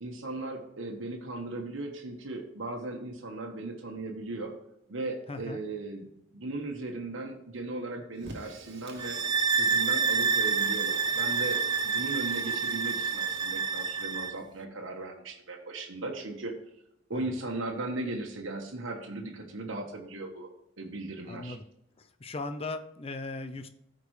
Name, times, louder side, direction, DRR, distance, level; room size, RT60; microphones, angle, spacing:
voice 1, 0.0-4.5 4.9-6.1 6.3-9.2 9.5-16.5 17.1-20.5 20.8-21.6, right 2 dB, 85° right, 1 dB, 1.3 m, -37 dB
voice 2, 5.3-5.6 17.1-17.4 21.3-21.6 22.0-23.7, left 3 dB, 30° left, 9 dB, 0.6 m, -38 dB
Fire, 8.1-13.8, right 2 dB, 60° right, 1.6 m, -49 dB
sound 1, 9.0-14.4, right 5 dB, 20° right, 0.4 m, -28 dB
14.5 x 5.1 x 3.2 m, 0.80 s
head